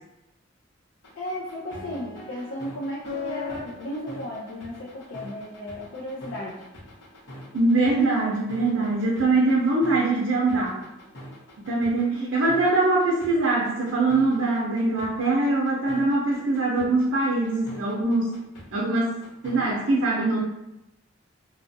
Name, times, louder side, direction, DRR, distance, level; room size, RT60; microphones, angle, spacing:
sound 1, 1.0-19.7, left 3 dB, 90° left, 1.1 m, -41 dB
voice 1, 1.1-6.6, left 1 dB, 75° left, -4 dB, 0.5 m, -34 dB
voice 2, 7.5-10.8 11.6-18.4 18.7-20.4, right 2 dB, 85° right, -4 dB, 0.5 m, -23 dB
2.7 x 2.4 x 2.6 m, 0.89 s
head